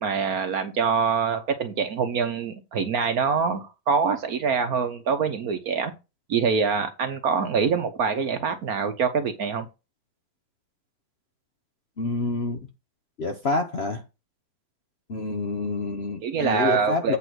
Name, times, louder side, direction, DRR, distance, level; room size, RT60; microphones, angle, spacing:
voice 1, 0.0-5.9 6.3-9.7 16.2-17.2, right 6 dB, 55° right, 1.2 m, -25 dB
voice 2, 12.0-12.6 13.2-14.0 15.1-17.2, left 3 dB, 45° left, 0.9 m, -27 dB
8.6 x 3.8 x 6.1 m
omnidirectional pair, 2.1 m